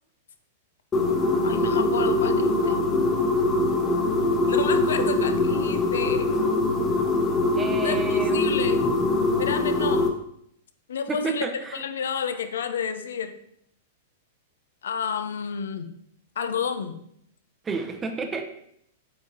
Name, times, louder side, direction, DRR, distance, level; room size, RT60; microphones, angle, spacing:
sound 1, 0.9-10.1, left 2 dB, 25° left, 1.1 m, -23 dB
voice 1, 1.4-2.8 4.5-6.3 7.8-8.8 9.4-10.0 10.9-11.5 11.7-13.3 14.8-15.9 16.4-17.0, left 6 dB, 70° left, 9 dB, 0.6 m, -30 dB
voice 2, 7.6-8.5 11.1-11.8 17.6-18.5, right 4 dB, 20° right, 5 dB, 0.7 m, -31 dB
8.0 x 4.9 x 2.8 m, 0.71 s
figure-of-eight pair, 100°, 0 cm